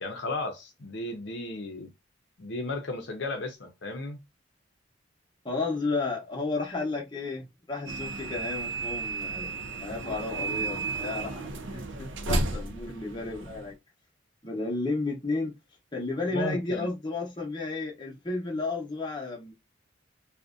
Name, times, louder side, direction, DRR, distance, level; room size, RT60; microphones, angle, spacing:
voice 1, 0.0-1.9 2.4-4.2 16.3-16.9, left 2 dB, 60° left, 0.6 m, -34 dB
voice 2, 5.4-11.4 11.7-13.7 14.4-15.5 15.9-19.5, left 3 dB, 25° left, 0.7 m, -32 dB
sound 1, 7.9-13.7, right 3 dB, 70° right, 0.5 m, -33 dB
2.5 x 2.1 x 2.4 m
head